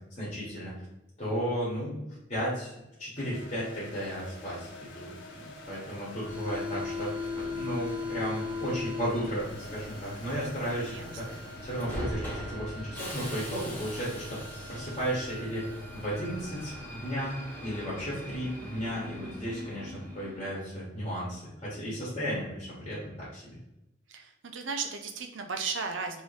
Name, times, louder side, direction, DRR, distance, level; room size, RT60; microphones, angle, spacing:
voice 1, 0.1-0.7 1.2-2.0 2.3-2.7 3.0-10.9 11.2-14.4 14.7-15.7 15.9-23.6, equal, 30° left, -6 dB, 1.1 m, -34 dB
sound 1, 3.2-20.0, left 2 dB, 65° left, 0.6 m, -49 dB
Subway metro underground, 6.2-20.6, left 2 dB, 10° left, 0.8 m, -39 dB
voice 2, 10.9-11.4 24.1-26.2, right 5 dB, 80° right, 5 dB, 0.5 m, -35 dB
3.0 x 2.7 x 3.2 m, 0.92 s
head